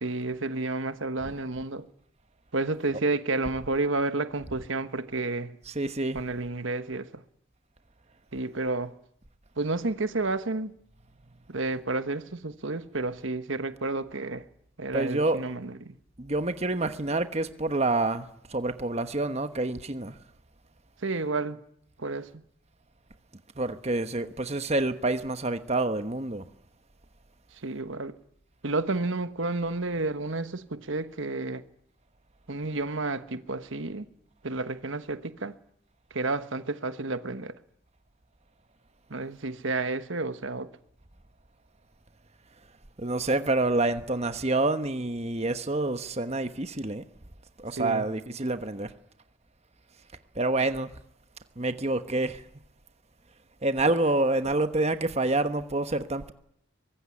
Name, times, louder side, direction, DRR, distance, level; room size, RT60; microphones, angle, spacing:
voice 1, 0.0-1.8 2.5-5.6 6.1-7.2 8.3-8.9 9.6-10.7 11.5-14.4 14.8-15.9 21.0-21.6 22.0-22.3 27.6-28.1 28.6-31.6 32.5-34.1 34.4-35.5 36.1-37.5 39.1-40.7 47.8-48.1, right 3 dB, 65° right, 1.3 m, -31 dB
voice 2, 5.7-6.2 14.9-15.4 16.2-20.2 23.6-26.4 43.0-47.0 47.6-48.9 50.4-50.9 51.6-52.4 53.6-56.3, right 2 dB, 30° right, 1.2 m, -27 dB
24.0 x 21.0 x 9.9 m
head